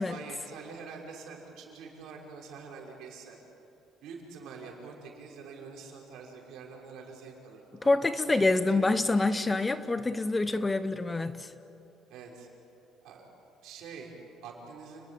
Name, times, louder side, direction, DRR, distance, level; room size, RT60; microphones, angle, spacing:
voice 1, 0.0-3.4 4.0-8.8 12.1-12.5 13.0-13.3 13.6-15.1, right 5 dB, 75° right, 0 dB, 5.7 m, -46 dB
voice 2, 7.8-11.5, left 2 dB, 15° left, 12 dB, 0.9 m, -26 dB
29.5 x 20.0 x 8.6 m, 2.8 s
cardioid pair, 130°, 0 cm